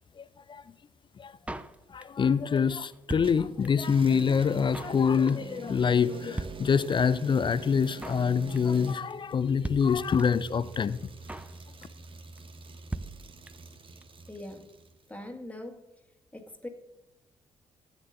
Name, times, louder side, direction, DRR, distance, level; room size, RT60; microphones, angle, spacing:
Drum kit, 1.5-2.3 2.6-2.7 2.8-3.9 4.2-4.3 4.5-5.0 5.3-5.6 5.8-5.9 6.1-6.2 6.4-7.2 7.5-7.6 7.7-8.3 8.6-8.8 9.1-9.2 9.4-9.5 9.6-10.5 10.7-10.8 11.0-11.6 11.8-12.1 12.4-12.5 12.6-12.7 12.9-13.7 14.0-14.1 14.3-14.4, right 2 dB, 10° right, 0.7 m, -39 dB
voice 1, 1.9-11.0, left 6 dB, 35° left, 16 dB, 0.5 m, -25 dB
sound 1, 3.2-15.0, right 3 dB, 35° right, 1.1 m, -46 dB
voice 2, 14.3-14.8 15.1-15.9 16.3-16.7, left 1 dB, 10° left, 3 dB, 1.8 m, -42 dB
16.0 x 9.0 x 2.6 m, 1.0 s
figure-of-eight pair, 40°, 15 cm